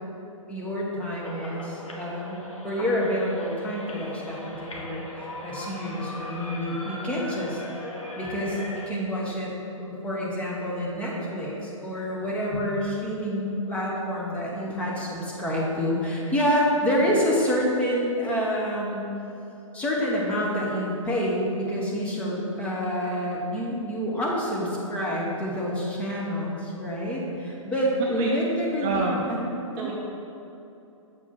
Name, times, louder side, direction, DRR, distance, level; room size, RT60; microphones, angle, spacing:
voice 1, 0.5-2.4 2.6-7.6 8.2-9.5 9.8-19.0 19.7-29.9, equal, 5° left, -4 dB, 1.0 m, -28 dB
sound 1, 1.2-8.9, left 1 dB, 70° left, 1.3 m, -39 dB
voice 2, 28.8-29.2 29.8-29.9, right 4 dB, 20° right, -2 dB, 0.4 m, -28 dB
7.1 x 4.8 x 4.1 m, 2.9 s
figure-of-eight pair, 120°, 17 cm